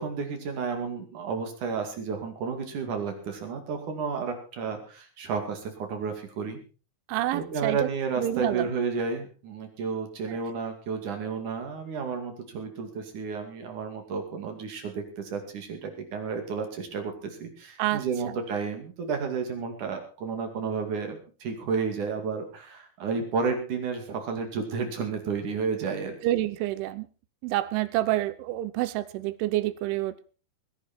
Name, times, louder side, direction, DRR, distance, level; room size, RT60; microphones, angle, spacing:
voice 1, 0.0-6.6 7.3-26.2, right 5 dB, 45° right, 5 dB, 3.2 m, -32 dB
voice 2, 7.1-7.9 8.2-8.7 10.3-10.4 17.8-18.0 26.2-27.1 27.4-30.2, right 15 dB, 80° right, 15 dB, 3.1 m, -28 dB
21.5 x 10.5 x 4.3 m, 0.36 s
omnidirectional pair, 5.9 m